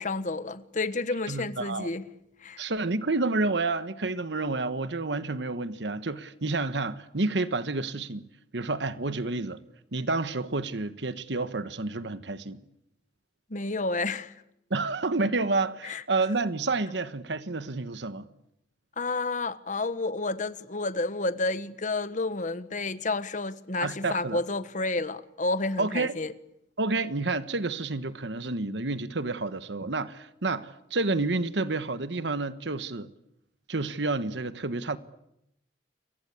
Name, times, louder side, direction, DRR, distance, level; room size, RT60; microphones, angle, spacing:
voice 1, 0.0-2.0 2.4-2.6 13.5-14.3 15.8-16.0 19.0-26.3, left 3 dB, 45° left, 1.4 m, -30 dB
voice 2, 1.3-1.9 2.6-8.3 8.5-9.6 9.9-12.6 14.7-18.3 23.8-24.4 25.8-26.1 26.8-33.1 33.7-35.0, right 3 dB, 75° right, 1.3 m, -29 dB
29.5 x 23.5 x 8.4 m
head